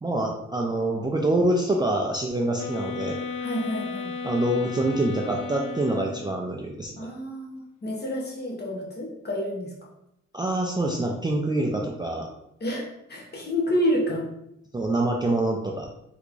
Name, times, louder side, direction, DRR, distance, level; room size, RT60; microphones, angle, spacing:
voice 1, 0.0-3.2 4.2-7.1 10.3-12.3 14.7-15.9, right 1 dB, 15° right, -1 dB, 0.3 m, -25 dB
sound 1, 2.6-6.5, left 4 dB, 85° left, 0.5 m, -34 dB
voice 2, 3.4-4.1 7.0-9.9 12.6-14.3, equal, 35° left, -1 dB, 0.9 m, -29 dB
3.5 x 3.0 x 2.5 m, 0.81 s
cardioid pair, 115°, 29 cm